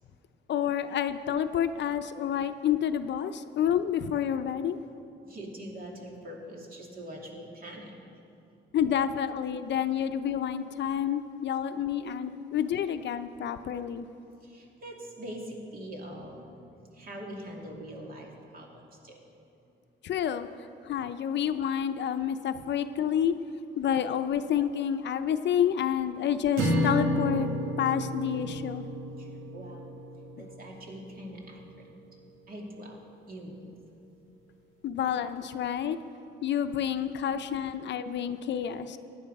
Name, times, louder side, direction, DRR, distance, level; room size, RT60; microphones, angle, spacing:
voice 1, 0.5-4.8 8.7-14.1 20.0-20.5 20.8-23.4 23.8-27.5 27.8-28.8 34.8-36.0 36.4-39.0, left 9 dB, 65° left, 10 dB, 0.6 m, -29 dB
voice 2, 5.2-8.0 14.4-19.2 29.2-29.9 30.4-31.9 32.5-33.0 33.3-33.7, equal, 45° right, -1 dB, 2.7 m, -43 dB
sound 1, 26.6-30.9, equal, 90° right, 2.0 m, -31 dB
16.0 x 10.0 x 5.3 m, 2.8 s
cardioid pair, 90°, 20 cm